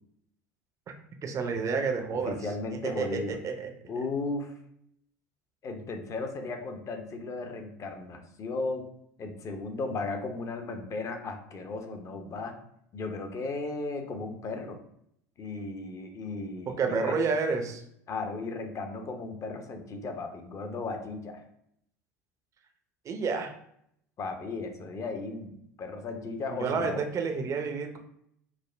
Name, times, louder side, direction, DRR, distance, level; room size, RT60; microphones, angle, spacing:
voice 1, 1.2-2.3 2.8-3.7 16.7-17.8 23.0-23.5 26.5-28.0, right 5 dB, 35° right, 5 dB, 0.6 m, -30 dB
voice 2, 2.1-3.4 3.9-4.5 5.6-8.9 9.2-12.6 12.9-14.8 15.4-17.2 18.1-21.4 24.2-27.0, left 3 dB, 35° left, 5 dB, 0.7 m, -35 dB
5.0 x 2.1 x 3.2 m, 0.70 s
hypercardioid pair, 80°, 9 cm